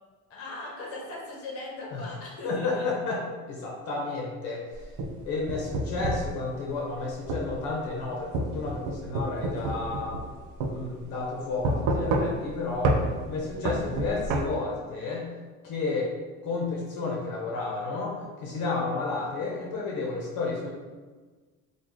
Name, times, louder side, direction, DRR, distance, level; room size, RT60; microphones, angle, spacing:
voice 1, 0.3-2.9, left 2 dB, 50° left, -2 dB, 0.9 m, -39 dB
voice 2, 2.4-4.9 5.3-10.2 10.7-12.9 13.3-15.3 15.6-16.1 16.4-20.7, left 3 dB, 75° left, -3 dB, 0.8 m, -31 dB
sound 1, 4.7-6.3 7.3-7.5 8.3-10.3 10.6-10.7 11.6-12.5 12.8-13.0 13.7-14.4, right 2 dB, 80° right, 0.5 m, -27 dB
3.0 x 2.3 x 3.7 m, 1.4 s
cardioid pair, 145°, 30 cm